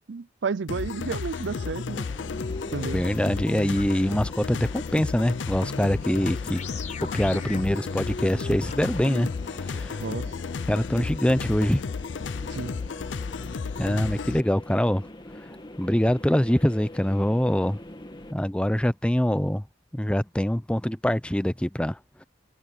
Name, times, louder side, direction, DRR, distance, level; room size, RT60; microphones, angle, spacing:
voice 1, 0.1-2.1 2.7-3.0 10.0-10.3 12.5-12.8, right 5 dB, 75° right, 0.5 m, -31 dB
sound 1, 0.7-14.4, left 5 dB, 85° left, 0.5 m, -33 dB
sound 2, 1.5-2.9 3.8-3.9 6.1-9.0, left 3 dB, 45° left, 4.4 m, -40 dB
sound 3, 2.0-18.3, left 1 dB, 25° left, 2.4 m, -43 dB
voice 2, 2.9-6.6 7.0-10.0 10.6-11.8 13.8-15.0 15.8-17.8 18.3-19.6 19.9-22.2, equal, 5° left, 0.7 m, -24 dB
head